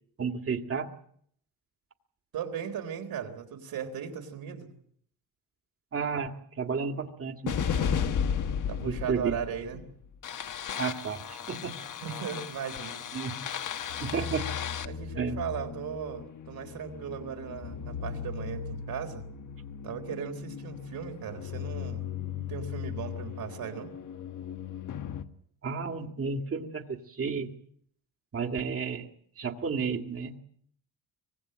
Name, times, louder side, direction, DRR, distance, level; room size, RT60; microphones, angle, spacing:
voice 1, 0.2-0.9 5.9-7.5 7.8-7.9 8.8-9.3 10.8-11.8 13.1-13.5 14.0-14.5 15.2-15.4 25.6-27.5 28.3-29.1 29.4-30.4, right 5 dB, 40° right, 5 dB, 2.1 m, -32 dB
voice 2, 2.3-4.7 8.7-9.8 12.0-13.0 14.8-19.2 19.8-22.1 22.5-23.9, right 8 dB, 75° right, 6 dB, 3.8 m, -37 dB
sound 1, 7.5-25.3, left 8 dB, 55° left, 1.4 m, -35 dB
24.5 x 19.5 x 7.6 m, 0.66 s
cardioid pair, 145°, 36 cm